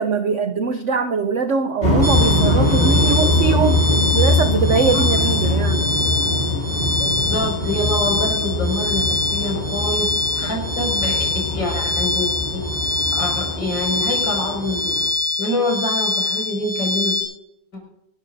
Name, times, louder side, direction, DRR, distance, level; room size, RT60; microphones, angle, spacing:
voice 1, 0.0-5.9 10.4-10.5, right 5 dB, 80° right, 8 dB, 0.6 m, -22 dB
sound 1, 1.8-15.1, left 1 dB, 30° left, 2.8 m, -22 dB
sound 2, 2.0-17.2, left 3 dB, 5° left, 4.0 m, -24 dB
voice 2, 7.0-12.7 13.2-15.0 15.4-17.1, left 1 dB, 65° left, 0 dB, 6.1 m, -26 dB
26.0 x 13.5 x 2.6 m, 0.82 s
omnidirectional pair, 2.2 m